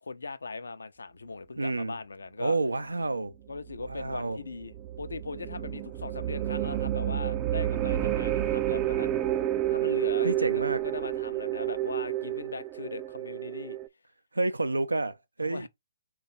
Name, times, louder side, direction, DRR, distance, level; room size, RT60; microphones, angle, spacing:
voice 1, 0.0-2.6 3.5-9.1 9.7-13.8 15.4-15.7, left 4 dB, 75° left, 0.5 m, -39 dB
voice 2, 1.6-2.0 2.4-3.3 3.8-4.4 10.2-10.8 14.3-15.7, right 3 dB, 85° right, 0.5 m, -29 dB
sound 1, 3.5-13.9, right 13 dB, 25° right, 0.4 m, -30 dB
3.1 x 2.3 x 4.2 m
figure-of-eight pair, 135°, 0 cm